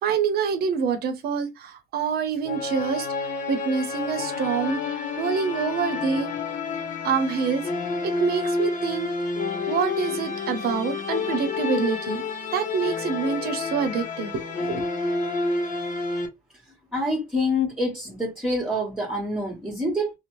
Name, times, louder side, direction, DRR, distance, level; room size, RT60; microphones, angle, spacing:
voice 1, 0.0-3.1 3.5-4.8 5.2-6.3 7.0-7.6 8.0-9.1 9.7-12.2 12.5-14.9, right 6 dB, 65° right, 0.8 m, -26 dB
sound 1, 2.4-16.3, left 4 dB, 50° left, 0.9 m, -29 dB
voice 2, 16.9-20.1, left 1 dB, 5° right, 1.3 m, -26 dB
2.6 x 2.2 x 3.1 m
cardioid pair, 110°, 17 cm